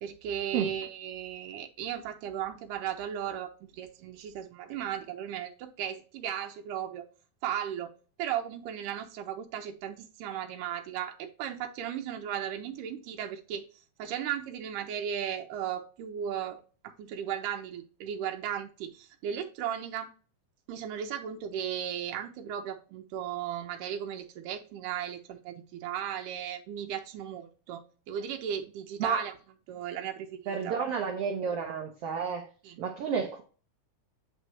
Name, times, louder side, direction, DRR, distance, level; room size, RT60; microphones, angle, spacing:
voice 1, 0.0-7.1 7.4-7.9 8.2-13.7 14.0-20.1 20.7-29.3 29.7-30.8 32.6-32.8, right 9 dB, 90° right, 2.3 m, -36 dB
voice 2, 30.5-32.5 32.8-33.4, right 6 dB, 75° right, 1.4 m, -31 dB
9.3 x 3.4 x 3.0 m
omnidirectional pair, 3.8 m